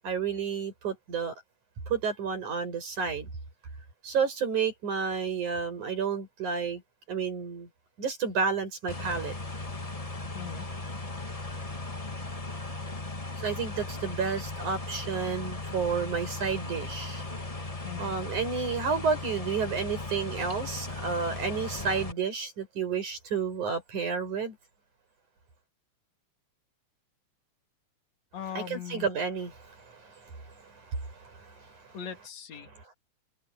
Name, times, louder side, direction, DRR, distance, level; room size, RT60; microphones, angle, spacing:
voice 1, 0.0-1.3 1.9-3.3 4.0-6.8 7.1-7.7 8.0-9.4 13.4-17.2 18.0-24.6 28.5-32.0 32.6-32.9, right 5 dB, 70° right, 8.2 m, -31 dB
sound 1, 8.9-22.1, left 2 dB, 35° left, 0.6 m, -37 dB
voice 2, 10.3-10.7 17.8-18.1 28.3-29.1 31.9-32.7, left 9 dB, 60° left, 3.8 m, -39 dB
omnidirectional pair, 3.6 m